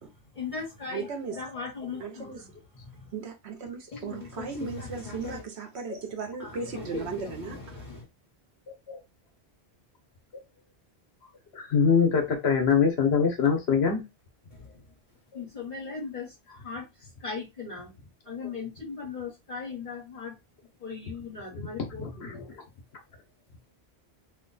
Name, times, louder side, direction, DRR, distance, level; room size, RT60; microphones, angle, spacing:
voice 1, 0.3-2.5 2.9-3.1 3.9-5.4 6.4-8.0 14.5-14.8 15.3-17.9 18.2-20.3 20.8-22.6, left 5 dB, 50° left, 1.4 m, -39 dB
voice 2, 0.9-1.4 2.0-2.5 3.1-7.8, right 5 dB, 85° right, 1.1 m, -36 dB
voice 3, 11.5-14.0 21.5-22.4, left 6 dB, 80° left, 1.2 m, -24 dB
3.0 x 2.3 x 3.8 m
omnidirectional pair, 1.1 m